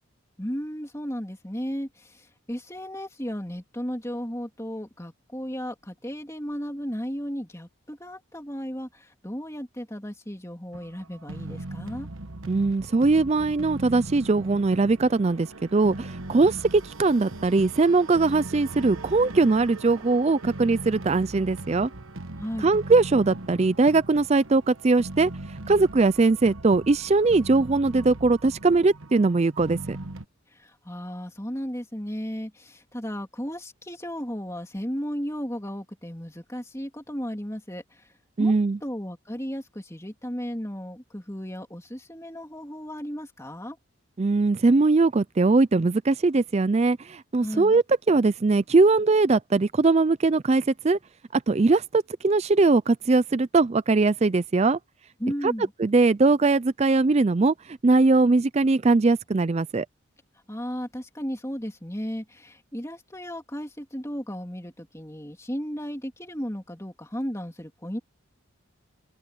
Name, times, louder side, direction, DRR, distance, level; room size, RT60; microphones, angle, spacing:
voice 1, 0.4-12.1 22.4-22.7 30.5-38.1 38.4-38.6 38.8-43.8 47.4-47.7 55.2-55.7 60.5-68.0, equal, 15° left, 3.1 m, -34 dB
sound 1, 10.7-30.3, right 2 dB, 70° right, 1.3 m, -39 dB
voice 2, 12.5-21.9 22.6-25.3 25.7-30.0 38.4-38.8 44.2-51.0 51.3-54.8 55.4-55.5 55.8-59.9, right 3 dB, 30° right, 0.4 m, -21 dB
head